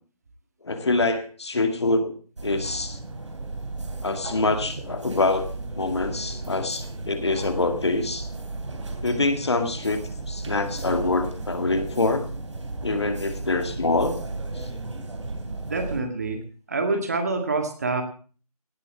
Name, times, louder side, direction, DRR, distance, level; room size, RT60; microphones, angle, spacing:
voice 1, 0.6-2.2 2.4-3.0 4.0-5.5 5.8-8.3 9.0-12.3 12.8-14.2 14.5-14.7, left 3 dB, 45° left, 8 dB, 2.1 m, -25 dB
sound 1, 2.4-16.0, right 3 dB, 50° right, 3.0 m, -34 dB
voice 2, 15.6-16.4 16.7-18.0, right 3 dB, 25° right, 7 dB, 1.8 m, -26 dB
18.0 x 8.2 x 7.2 m, 0.40 s
figure-of-eight pair, 170°, 20 cm